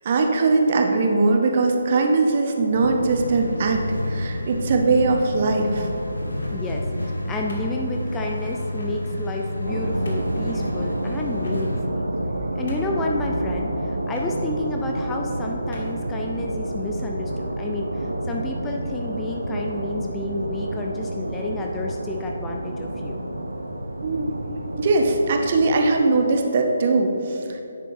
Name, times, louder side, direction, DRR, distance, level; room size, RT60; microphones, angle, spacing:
voice 1, 0.0-5.9 24.0-24.3 24.8-27.6, right 3 dB, 35° right, 3 dB, 0.8 m, -20 dB
sound 1, 2.7-11.8, left 1 dB, 85° left, 1.0 m, -30 dB
sound 2, 6.2-6.8 7.5-8.2 8.8-9.0 9.6-9.7 10.0-10.4 11.4-11.9 12.3-12.4 12.7-13.1 14.1-14.3 15.2-15.3 15.7-16.0, left 1 dB, 50° left, 1.4 m, -41 dB
voice 2, 6.5-12.0 12.6-23.2, left 2 dB, 10° left, 0 dB, 0.4 m, -30 dB
sound 3, 9.7-25.9, right 1 dB, 70° right, 0.7 m, -29 dB
9.8 x 7.5 x 2.7 m, 2.8 s
figure-of-eight pair, 145°, 0 cm